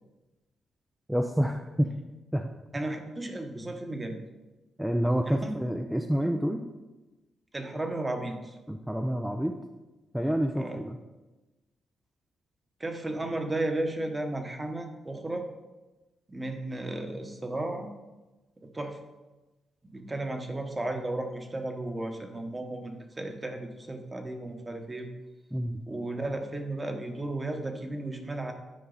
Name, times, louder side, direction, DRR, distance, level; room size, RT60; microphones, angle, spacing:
voice 1, 1.1-1.9 2.3-2.5 4.8-6.6 8.7-9.6 10.1-11.0 25.5-25.8, equal, 5° right, 4 dB, 0.6 m, -28 dB
voice 2, 2.7-4.2 5.2-5.5 6.2-6.3 7.5-8.5 10.5-10.8 12.8-15.4 16.3-17.9 18.6-19.0 19.8-25.1 25.9-28.5, right 2 dB, 25° right, 4 dB, 1.3 m, -34 dB
10.0 x 4.7 x 4.1 m, 1.1 s
cardioid pair, 65°, 0 cm